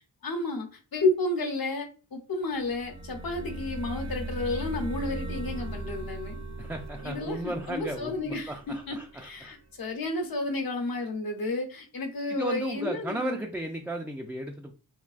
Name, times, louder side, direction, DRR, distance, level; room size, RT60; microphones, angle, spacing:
voice 1, 0.2-6.4 7.0-8.6 8.9-13.4, left 2 dB, 55° left, 0.9 m, -31 dB
sound 1, 2.6-9.3, right 2 dB, 40° right, 0.6 m, -38 dB
voice 2, 6.6-9.6 12.3-14.7, right 1 dB, 5° right, 0.3 m, -35 dB
3.3 x 2.3 x 2.4 m
cardioid pair, 45°, 42 cm